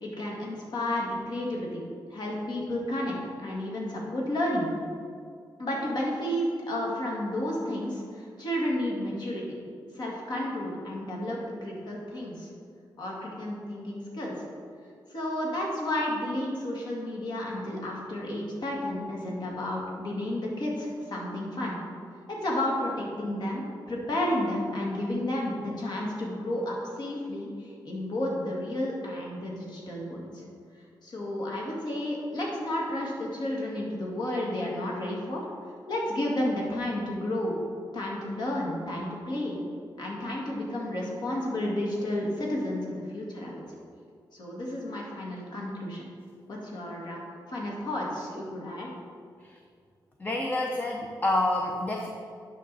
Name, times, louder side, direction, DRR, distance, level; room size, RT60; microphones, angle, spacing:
voice 1, 0.0-1.8 2.1-4.7 5.6-9.6 9.9-12.5 13.0-14.5 15.1-21.8 22.3-30.4 31.0-35.4 35.9-37.5 37.9-39.6 40.0-43.6 44.3-46.0 46.5-47.2 47.5-48.9, left 1 dB, 60° left, -2 dB, 1.9 m, -32 dB
voice 2, 50.2-52.1, left 2 dB, 20° left, 1 dB, 0.6 m, -28 dB
9.1 x 5.8 x 4.1 m, 2.2 s
wide cardioid pair, 130°, 8 cm